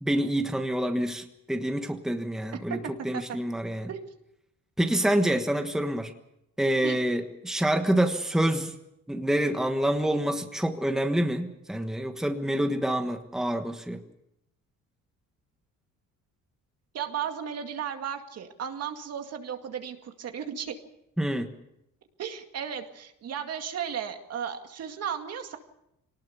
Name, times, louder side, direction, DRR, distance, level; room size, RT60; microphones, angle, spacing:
voice 1, 0.0-2.8 3.0-3.9 4.8-6.1 6.6-8.7 9.1-14.0 21.2-21.5, right 1 dB, ahead, 5 dB, 1.4 m, -27 dB
voice 2, 2.5-3.2 3.9-4.0 6.8-7.0 16.9-20.8 22.2-25.6, right 8 dB, 55° right, 6 dB, 2.2 m, -35 dB
24.0 x 19.0 x 7.0 m, 0.83 s
cardioid pair, 145°, 31 cm